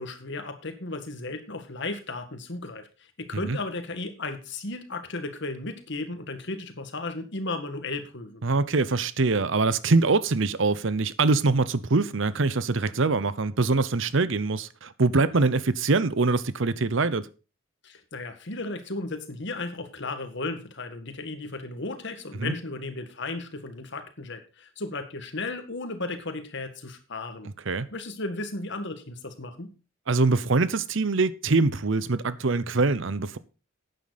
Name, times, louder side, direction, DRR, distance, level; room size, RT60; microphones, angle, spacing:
voice 1, 0.0-8.4 17.8-27.5 27.9-29.7, left 2 dB, 60° left, 1.8 m, -35 dB
voice 2, 8.4-17.3 22.4-22.5 27.7-27.9 30.1-33.4, right 3 dB, 65° right, 0.8 m, -24 dB
11.5 x 9.1 x 4.1 m
head